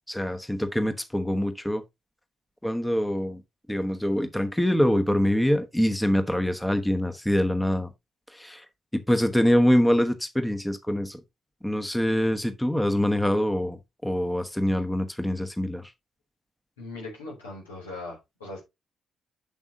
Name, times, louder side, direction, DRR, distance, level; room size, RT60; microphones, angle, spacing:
voice 1, 0.1-1.8 2.6-3.4 3.7-7.9 8.3-8.6 8.9-11.2 11.6-15.9, equal, 5° left, 1.1 m, -24 dB
voice 2, 16.8-18.6, left 2 dB, 80° left, 3.0 m, -39 dB
7.3 x 7.2 x 2.8 m
figure-of-eight pair, 40°, 0 cm